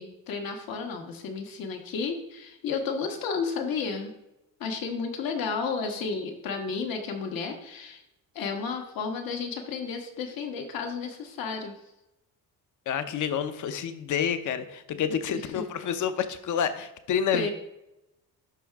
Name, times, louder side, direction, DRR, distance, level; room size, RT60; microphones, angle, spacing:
voice 1, 0.0-4.1 4.6-8.0 8.3-11.7 17.3-17.5, left 5 dB, 75° left, 3 dB, 1.5 m, -32 dB
voice 2, 12.9-17.5, left 8 dB, 60° left, 10 dB, 0.8 m, -29 dB
11.5 x 4.8 x 3.5 m, 0.87 s
cardioid pair, 155°, 35 cm